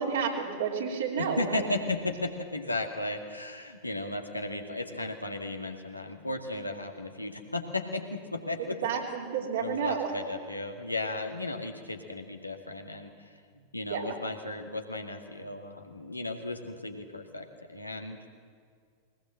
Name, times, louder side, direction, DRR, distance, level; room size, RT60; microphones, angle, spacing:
voice 1, 0.0-1.6 8.8-10.2 13.9-14.2, right 6 dB, 60° right, 0 dB, 3.7 m, -31 dB
voice 2, 1.2-8.8 9.6-18.2, left 2 dB, 85° left, 4 dB, 2.0 m, -35 dB
22.0 x 19.5 x 7.6 m, 2.1 s
figure-of-eight pair, 90°, 0 cm